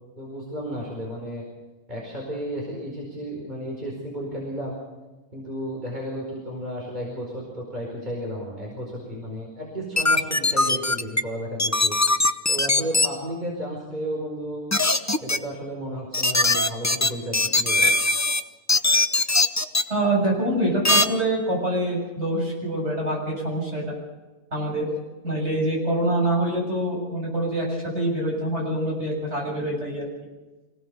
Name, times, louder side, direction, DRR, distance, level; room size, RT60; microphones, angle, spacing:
voice 1, 0.1-1.4 1.9-4.8 5.3-12.0 12.5-14.7 15.2-17.9, equal, 30° right, -2 dB, 5.0 m, -33 dB
sound 1, 10.0-11.2 11.6-13.1 14.7-15.4 16.1-18.4 18.7-19.8 20.8-21.1, left 2 dB, 20° left, 0.5 m, -20 dB
voice 2, 19.9-24.0 24.5-24.9 25.2-30.0, right 1 dB, 45° right, -2 dB, 7.5 m, -25 dB
25.0 x 17.5 x 6.8 m, 1.2 s
omnidirectional pair, 1.6 m